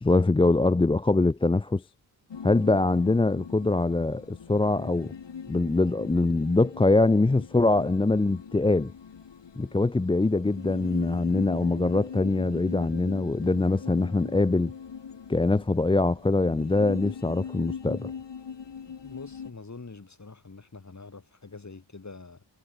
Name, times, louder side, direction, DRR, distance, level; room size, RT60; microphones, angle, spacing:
voice 1, 0.0-1.8 2.4-5.1 5.5-8.9 9.6-14.7 15.3-18.1, left 2 dB, 10° left, 0.5 m, -23 dB
sound 1, 2.3-19.5, left 6 dB, 60° left, 2.2 m, -41 dB
voice 2, 18.9-22.4, left 3 dB, 35° left, 3.3 m, -45 dB
cardioid pair, 45°, 49 cm